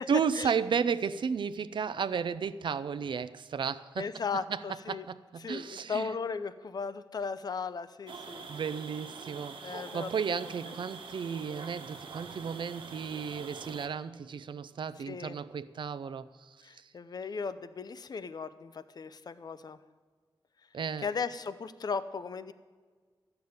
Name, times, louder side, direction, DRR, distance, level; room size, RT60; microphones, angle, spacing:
voice 1, 0.0-4.1 4.5-4.6 4.9-6.1 8.5-16.8 20.7-21.1, right 6 dB, 70° right, 15 dB, 0.5 m, -33 dB
voice 2, 4.0-5.1 5.4-8.5 9.6-10.5 15.1-15.4 16.6-19.8 21.0-22.5, left 5 dB, 50° left, 14 dB, 0.6 m, -37 dB
sound 1, 8.1-13.9, right 4 dB, 90° right, 1.2 m, -45 dB
13.0 x 6.8 x 9.4 m, 1.5 s
wide cardioid pair, 170°, 8 cm